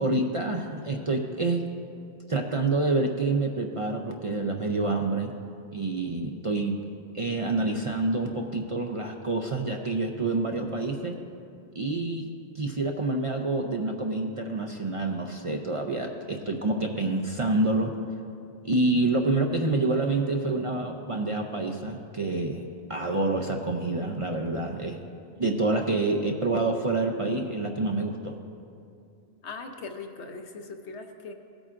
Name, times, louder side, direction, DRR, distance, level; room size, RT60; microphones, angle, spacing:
voice 1, 0.0-1.6 2.3-5.3 5.7-6.8 7.1-11.2 11.7-17.9 18.6-25.0 25.4-28.4, right 2 dB, 40° right, 2 dB, 0.5 m, -27 dB
voice 2, 29.4-31.3, left 4 dB, 90° left, 5 dB, 1.1 m, -40 dB
17.0 x 8.7 x 2.5 m, 2.6 s
omnidirectional pair, 1.1 m